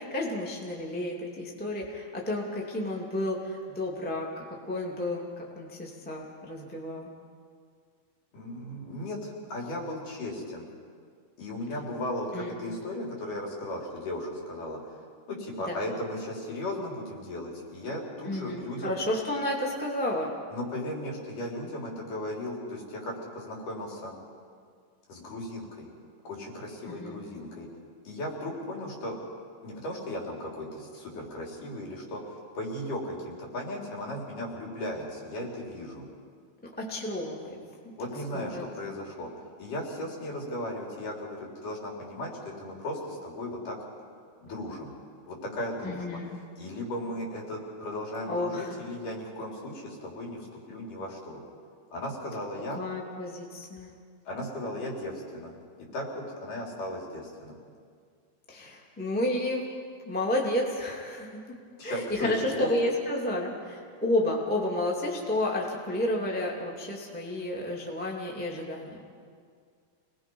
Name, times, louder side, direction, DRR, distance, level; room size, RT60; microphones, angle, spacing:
voice 1, 0.0-7.1 12.3-12.6 15.7-15.8 18.2-20.3 26.9-27.2 36.8-37.6 38.3-38.6 45.8-46.4 48.3-48.7 52.7-53.9 58.5-59.7 60.0-61.4 61.8-69.2, left 1 dB, 5° left, -2 dB, 1.7 m, -31 dB
voice 2, 8.3-10.7 11.4-14.8 15.3-19.0 20.5-24.1 25.1-25.9 26.3-27.7 28.1-29.2 29.6-36.1 38.0-39.3 39.6-43.8 44.4-44.9 45.3-46.2 46.6-51.4 51.9-52.8 54.3-55.5 55.9-57.6 61.8-62.7, left 1 dB, 60° left, -2 dB, 5.0 m, -36 dB
28.5 x 20.5 x 5.5 m, 2.1 s
omnidirectional pair, 4.4 m